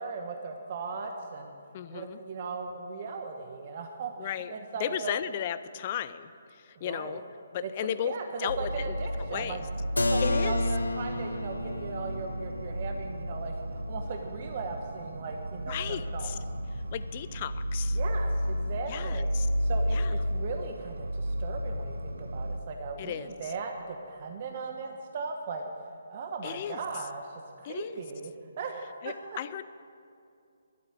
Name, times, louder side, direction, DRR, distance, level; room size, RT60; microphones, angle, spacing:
voice 1, 0.0-1.5 1.9-5.1 6.7-7.2 7.6-7.7 8.0-9.6 10.0-16.4 17.9-19.3 19.6-25.7 26.1-28.7 29.0-29.4, right 4 dB, 45° right, 4 dB, 1.1 m, -38 dB
voice 2, 1.7-2.2 4.2-4.5 4.8-7.2 7.5-8.1 8.4-8.9 9.3-9.6 10.2-10.6 15.7-16.4 16.9-18.0 18.9-19.5 19.9-20.1 23.0-23.3 26.4-26.8 27.6-28.0 29.0-29.6, left 10 dB, 35° left, 14 dB, 0.5 m, -35 dB
sound 1, 8.5-22.6, equal, 75° right, 0.7 m, -32 dB
Keyboard (musical), 10.0-15.6, left 2 dB, 80° left, 0.7 m, -35 dB
12.5 x 8.3 x 9.3 m, 2.4 s
figure-of-eight pair, 140°, 0 cm